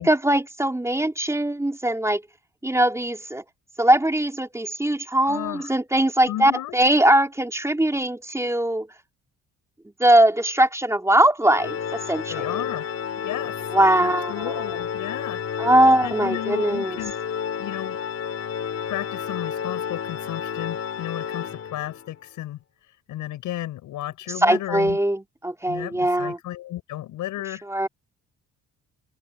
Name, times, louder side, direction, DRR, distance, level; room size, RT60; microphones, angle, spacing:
voice 1, 0.0-2.2 2.6-3.4 3.8-8.9 10.0-12.6 13.7-14.5 15.6-17.0 24.4-26.4 27.7-27.9, right 1 dB, 10° right, 3.5 m, -21 dB
voice 2, 5.3-5.7 6.3-6.8 12.3-12.9 13.2-13.6 14.0-15.4 16.0-17.1 17.6-18.0 18.9-22.6 23.1-25.0 25.7-27.6, left 14 dB, 85° left, 7.0 m, -33 dB
Organ, 11.4-22.1, left 7 dB, 50° left, 5.7 m, -31 dB
cardioid pair, 90°, 30 cm